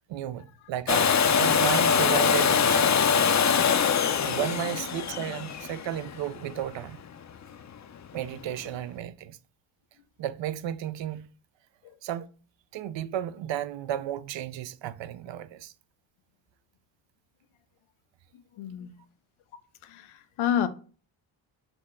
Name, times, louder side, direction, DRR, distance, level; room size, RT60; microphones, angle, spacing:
voice 1, 0.1-3.0 3.8-3.9 4.2-7.0 8.1-9.4 10.2-11.3 12.0-12.3 12.7-15.7, right 11 dB, 70° right, 0.5 m, -33 dB
Domestic sounds home sounds, 0.9-6.7 8.6-8.7, left 6 dB, 40° left, 0.5 m, -23 dB
voice 2, 18.6-19.0 19.8-20.7, left 9 dB, 90° left, 0.6 m, -29 dB
6.1 x 2.1 x 3.6 m
cardioid pair, 55°, 47 cm